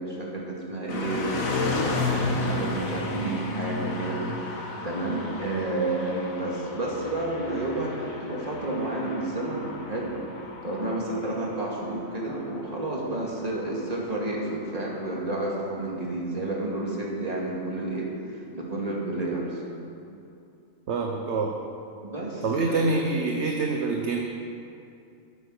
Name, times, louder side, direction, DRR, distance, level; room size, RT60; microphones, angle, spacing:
voice 1, 0.0-10.2 10.6-18.1 18.5-19.6 22.0-22.8, right 2 dB, 30° right, -3 dB, 2.4 m, -31 dB
sound 1, 0.9-14.9, left 3 dB, 85° left, 1.8 m, -33 dB
voice 2, 20.9-21.6 22.4-24.2, right 3 dB, 60° right, 2 dB, 1.1 m, -26 dB
13.0 x 9.7 x 6.4 m, 2.6 s
omnidirectional pair, 1.4 m